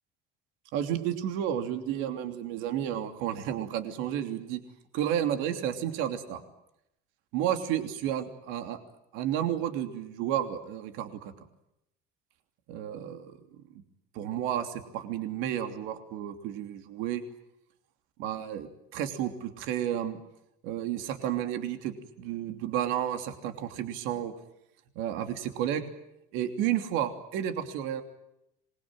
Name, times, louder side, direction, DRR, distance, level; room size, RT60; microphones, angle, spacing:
voice 1, 0.7-4.6 4.9-6.4 7.3-8.8 9.1-11.3 12.7-13.6 14.1-17.2 18.2-20.2 20.6-24.3 24.9-25.8 26.3-28.0, right 10 dB, 75° right, 7 dB, 3.1 m, -32 dB
26.5 x 22.0 x 9.0 m, 0.82 s
cardioid pair, 160°, 21 cm